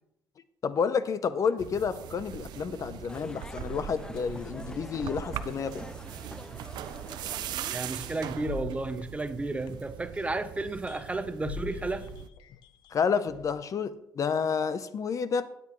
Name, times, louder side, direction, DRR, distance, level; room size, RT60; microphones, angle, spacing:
voice 1, 0.6-5.8 12.9-15.4, left 6 dB, 50° left, 14 dB, 0.7 m, -30 dB
sound 1, 1.6-12.3, right 10 dB, 75° right, 0.6 m, -40 dB
sound 2, 3.1-8.6, left 2 dB, 10° left, 0.6 m, -45 dB
sound 3, 7.3-7.4 8.4-10.1 10.9-11.2 11.5-13.6, left 6 dB, 80° left, 0.8 m, -43 dB
voice 2, 7.7-12.1, right 2 dB, 20° right, 11 dB, 0.8 m, -32 dB
12.5 x 9.4 x 3.1 m, 0.81 s
cardioid pair, 85°, 7 cm